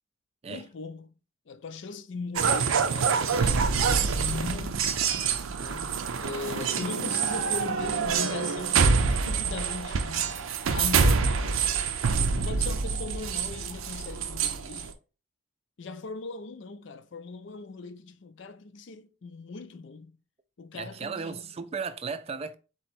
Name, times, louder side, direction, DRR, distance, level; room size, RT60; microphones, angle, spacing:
voice 1, 0.5-1.1 1.5-3.8 4.0-4.9 5.6-10.4 10.7-11.6 12.3-14.9 15.8-20.1 20.6-21.4, left 4 dB, 60° left, 0.4 m, -39 dB
sound 1, 2.4-14.9, right 5 dB, 85° right, 0.5 m, -26 dB
voice 2, 20.7-22.5, right 5 dB, 30° right, 0.3 m, -35 dB
4.3 x 2.8 x 4.2 m
head